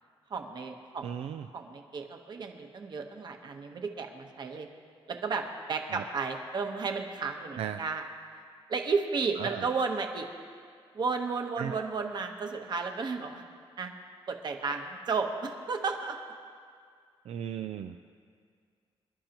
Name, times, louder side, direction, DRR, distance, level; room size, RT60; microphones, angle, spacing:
voice 1, 0.3-1.3 1.5-4.7 5.1-8.0 8.7-10.3 10.9-13.4 13.8-13.9 14.3-16.2, right 4 dB, 45° right, 4 dB, 1.2 m, -33 dB
voice 2, 1.0-1.5 5.9-6.0 7.6-7.8 9.4-9.7 11.6-11.8 17.3-18.0, right 9 dB, 90° right, 8 dB, 0.4 m, -36 dB
26.5 x 12.0 x 3.0 m, 2.1 s
wide cardioid pair, 165°, 10 cm